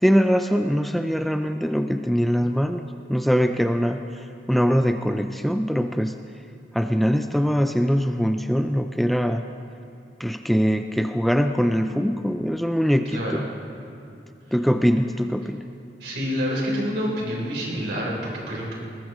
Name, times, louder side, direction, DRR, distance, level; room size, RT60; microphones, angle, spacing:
voice 1, 0.0-6.2 6.7-9.4 10.2-13.5 14.5-15.6, equal, ahead, 6 dB, 0.4 m, -22 dB
voice 2, 13.1-13.4 16.0-18.7, equal, 75° right, -4 dB, 4.1 m, -27 dB
20.5 x 19.0 x 3.1 m, 2.6 s
head